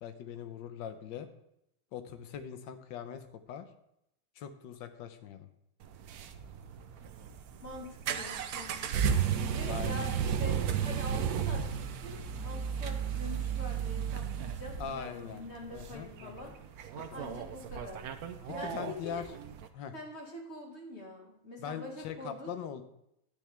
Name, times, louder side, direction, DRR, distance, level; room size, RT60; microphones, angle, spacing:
voice 1, 0.0-1.3 1.9-3.7 4.4-5.5 9.7-10.1 13.1-13.2 14.8-15.4 15.7-16.5 17.0-17.3 18.6-19.2 19.7-19.9 21.6-22.8, left 8 dB, 65° left, 9 dB, 1.4 m, -41 dB
sound 1, 5.8-19.7, right 8 dB, 75° right, 0.8 m, -34 dB
voice 2, 7.6-16.5 17.1-18.1 18.5-19.2 19.9-22.6, left 1 dB, 30° left, -1 dB, 1.9 m, -45 dB
10.0 x 9.8 x 3.4 m, 0.79 s
omnidirectional pair, 2.4 m